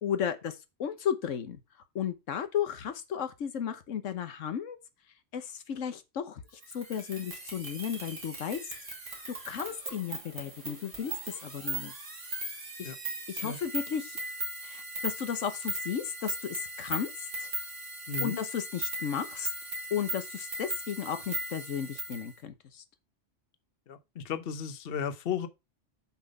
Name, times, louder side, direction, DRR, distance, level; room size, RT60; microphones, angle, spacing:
voice 1, 0.0-1.6 1.9-4.8 5.3-6.4 6.7-8.6 9.5-11.1 11.4-11.9 12.8-12.9 13.3-14.2 14.6-17.1 17.4-17.5 18.2-19.5 19.9-22.8, left 8 dB, 90° left, 1.3 m, -34 dB
sound 1, 6.6-22.3, right 2 dB, 90° right, 3.0 m, -38 dB
voice 2, 18.1-18.4 23.9-25.5, left 7 dB, 55° left, 1.0 m, -34 dB
7.0 x 5.9 x 5.3 m
omnidirectional pair, 1.3 m